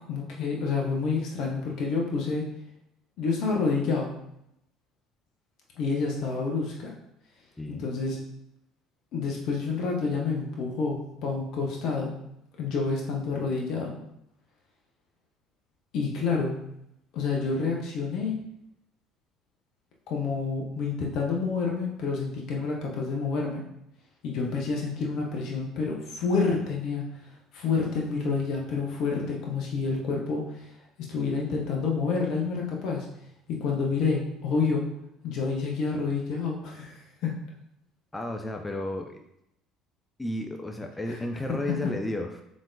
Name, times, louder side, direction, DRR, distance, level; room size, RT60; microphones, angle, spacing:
voice 1, 0.1-2.4 3.2-4.1 5.8-6.9 7.7-8.2 9.1-12.1 12.6-13.9 15.9-16.6 17.1-18.4 20.1-23.6 24.2-27.0 27.5-30.7 31.0-33.1 33.5-34.8 35.2-37.3 41.1-41.2 41.5-41.6, left 4 dB, 60° left, -1 dB, 0.7 m, -28 dB
voice 2, 38.1-39.2 40.2-42.4, left 1 dB, 10° left, 4 dB, 0.4 m, -32 dB
5.1 x 3.5 x 2.6 m, 0.81 s
figure-of-eight pair, 60°, 0 cm